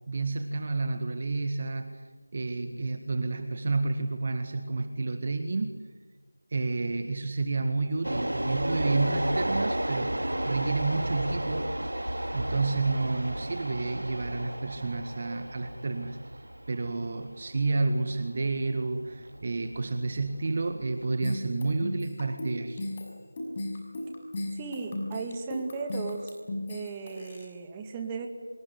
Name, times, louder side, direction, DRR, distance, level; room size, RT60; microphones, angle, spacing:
voice 1, 0.1-2.0 2.3-5.7 6.5-11.7 12.3-16.2 16.7-22.9, right 3 dB, 30° right, 7 dB, 1.8 m, -30 dB
sound 1, 8.0-21.1, right 1 dB, 80° right, 3.7 m, -33 dB
sound 2, 21.2-27.4, left 1 dB, 25° left, 6.1 m, -36 dB
voice 2, 24.5-26.3 26.7-28.3, right 4 dB, 10° right, 3 dB, 2.4 m, -36 dB
26.0 x 23.5 x 9.9 m, 1.4 s
figure-of-eight pair, 170°, 0 cm